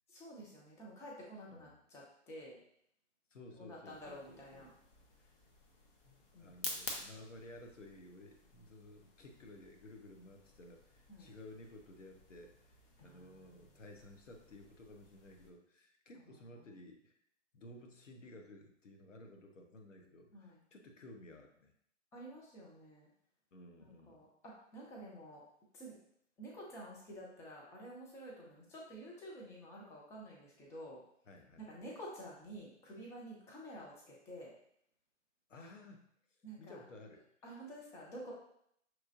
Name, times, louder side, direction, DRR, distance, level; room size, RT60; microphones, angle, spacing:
voice 1, 0.1-2.6 3.5-4.7 6.3-6.8 11.1-11.3 13.0-13.5 20.3-20.6 22.1-23.1 23.8-25.4 25.7-26.0 26.4-31.0 31.6-34.5 36.4-36.8 37.4-38.3, right 1 dB, 10° left, -3 dB, 0.6 m, -50 dB
voice 2, 3.3-4.7 6.1-12.7 13.0-17.2 17.5-21.7 23.5-24.3 31.3-31.7 35.5-36.0 36.6-37.2, left 1 dB, 80° left, 3 dB, 1.0 m, -55 dB
sound 1, 3.9-15.5, left 3 dB, 45° left, 1.0 m, -51 dB
6.1 x 3.1 x 2.5 m, 0.70 s
hypercardioid pair, 130°, 37 cm